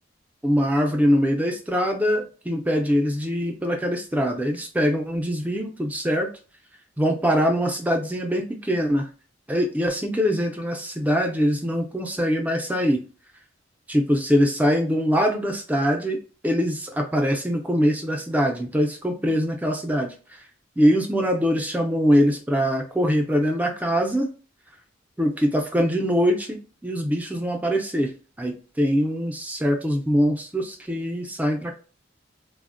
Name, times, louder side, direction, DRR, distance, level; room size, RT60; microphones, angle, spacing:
voice 1, 0.4-6.3 7.0-9.1 9.5-13.0 13.9-16.2 16.4-20.5 20.8-24.3 25.2-28.1 28.4-31.7, equal, 10° right, 3 dB, 0.4 m, -23 dB
3.4 x 2.0 x 2.4 m, 0.37 s
head